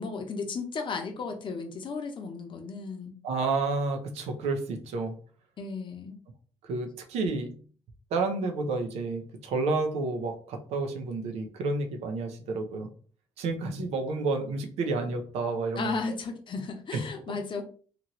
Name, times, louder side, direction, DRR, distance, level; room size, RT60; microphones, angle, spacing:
voice 1, 0.0-3.1 5.6-6.2 15.8-17.6, left 4 dB, 50° left, 5 dB, 0.8 m, -34 dB
voice 2, 3.2-5.2 6.6-7.5 8.1-12.9 13.4-16.1 16.9-17.1, right 3 dB, 80° right, 5 dB, 0.7 m, -30 dB
2.9 x 2.5 x 3.0 m, 0.42 s
supercardioid pair, 65°, 11 cm